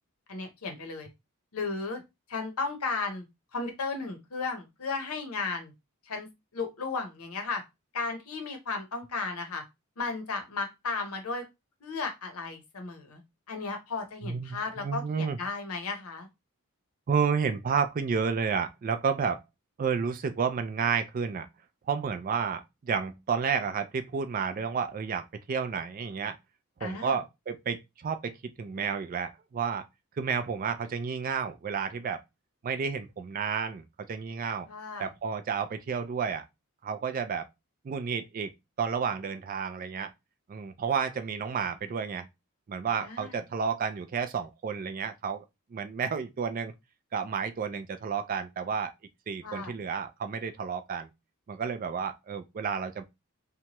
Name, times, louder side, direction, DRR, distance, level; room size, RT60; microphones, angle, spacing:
voice 1, 0.3-1.1 1.5-2.0 2.3-3.3 3.5-5.7 6.1-6.3 6.5-7.6 7.9-9.6 10.0-11.4 11.8-13.2 13.5-16.3 26.8-27.2 34.7-35.1 43.0-43.4 49.4-49.7, left 4 dB, 75° left, 0.8 m, -34 dB
voice 2, 14.2-15.4 17.1-19.4 19.8-21.5 21.9-26.4 26.8-28.3 28.6-29.8 30.2-32.2 32.6-34.7 35.0-36.4 36.8-37.5 37.8-38.5 38.8-40.1 40.5-42.3 42.7-45.4 45.7-46.7 47.1-48.9 49.3-51.1 51.5-53.0, right 6 dB, 40° right, 0.3 m, -31 dB
2.8 x 2.2 x 2.9 m
head